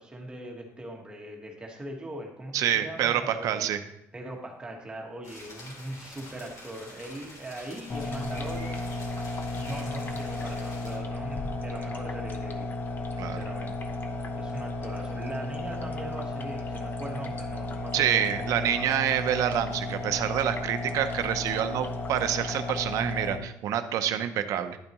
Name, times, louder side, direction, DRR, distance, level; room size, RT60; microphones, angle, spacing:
voice 1, 0.0-3.7 4.1-8.8 9.6-12.7 13.2-13.8 14.3-19.0, right 1 dB, 15° right, 0 dB, 1.4 m, -40 dB
voice 2, 2.5-3.8 13.2-13.4 17.9-24.8, right 10 dB, 70° right, 9 dB, 0.7 m, -27 dB
sound 1, 5.2-11.0, left 2 dB, 60° left, 3.2 m, -46 dB
sound 2, 7.9-23.4, left 2 dB, 35° left, 0.9 m, -34 dB
10.5 x 8.9 x 3.1 m, 0.80 s
cardioid pair, 145°, 6 cm